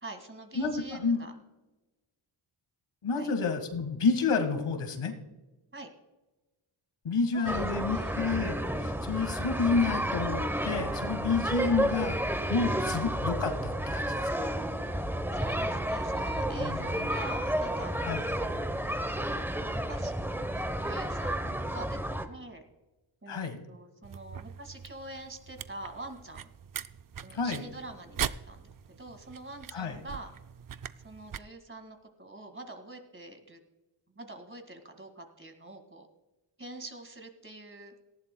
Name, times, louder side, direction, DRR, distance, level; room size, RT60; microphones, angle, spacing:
voice 1, 0.0-1.3 3.1-3.3 5.7-5.9 7.3-8.1 12.6-12.9 15.3-18.3 19.2-20.1 20.5-22.0 22.3-22.6 23.2-26.5 27.2-28.7 29.0-30.3 31.0-33.6 34.1-36.1 36.6-37.9, right 2 dB, 25° right, 5 dB, 2.1 m, -45 dB
voice 2, 0.6-1.2 3.0-5.1 7.0-12.2 12.5-14.4 16.6-17.1 18.1-18.2 23.3-23.6 27.3-27.6 29.7-30.0, left 4 dB, 80° left, 6 dB, 1.9 m, -30 dB
sound 1, 7.5-22.3, right 1 dB, 5° right, 0.9 m, -31 dB
sound 2, 24.0-31.4, right 8 dB, 45° right, 0.5 m, -41 dB
18.5 x 15.0 x 2.3 m, 1.1 s
wide cardioid pair, 90°, 50 cm